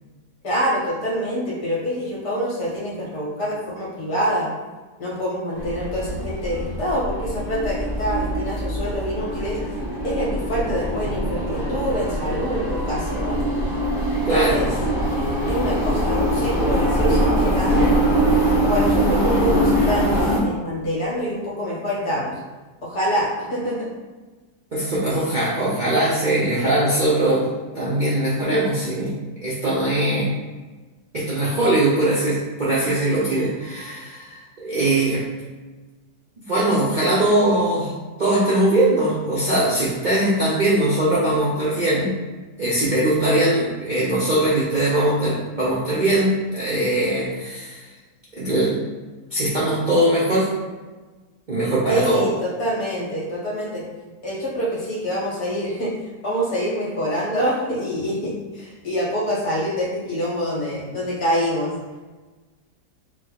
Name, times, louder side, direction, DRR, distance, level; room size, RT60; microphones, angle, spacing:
voice 1, 0.4-4.5 5.0-9.6 10.0-13.4 14.3-14.7 15.5-17.9 18.6-22.4 22.8-23.9 51.9-53.8 54.2-55.9 56.2-61.7, equal, 65° left, -5 dB, 1.8 m, -26 dB
sound 1, 5.6-20.4, equal, ahead, 1.0 m, -22 dB
voice 2, 14.3-14.6 24.7-27.5 27.7-29.1 29.4-30.3 31.1-35.2 36.5-37.9 38.2-42.1 42.6-47.9 48.3-48.8 49.3-50.5 51.5-52.3, right 1 dB, 45° right, -8 dB, 0.6 m, -21 dB
4.9 x 2.3 x 4.0 m, 1.3 s
omnidirectional pair, 1.8 m